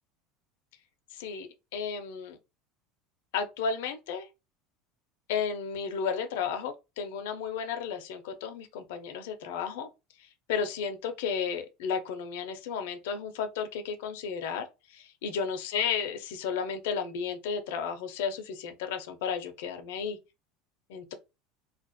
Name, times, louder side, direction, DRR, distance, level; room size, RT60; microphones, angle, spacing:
voice 1, 1.1-2.4 3.3-4.3 5.3-9.9 10.5-14.6 14.9-20.2 20.9-21.1, left 6 dB, 80° left, 0.5 m, -33 dB
2.4 x 2.1 x 2.5 m
cardioid pair, 165°, 0 cm